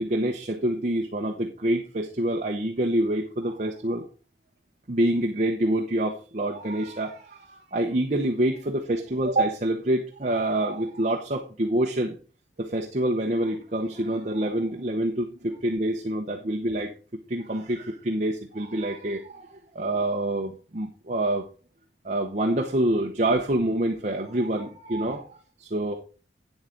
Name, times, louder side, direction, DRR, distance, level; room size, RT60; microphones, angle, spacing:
voice 1, 0.0-4.0 4.9-12.2 12.6-16.9 17.3-21.5 22.0-26.0, right 1 dB, 40° right, 3 dB, 0.9 m, -26 dB
9.1 x 7.9 x 3.9 m, 0.36 s
head